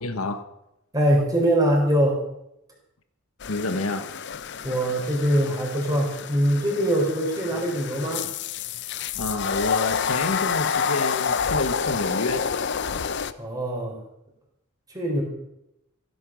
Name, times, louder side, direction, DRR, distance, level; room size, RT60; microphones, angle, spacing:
voice 1, 0.0-0.4 3.5-4.1 9.1-12.5 12.9-13.0, left 2 dB, 80° left, 1.3 m, -29 dB
voice 2, 0.9-2.2 4.6-8.3 13.4-14.0 14.9-15.2, right 1 dB, 15° right, 4.4 m, -23 dB
sound 1, 3.4-13.3, left 6 dB, 55° left, 0.7 m, -29 dB
16.0 x 11.0 x 6.3 m
head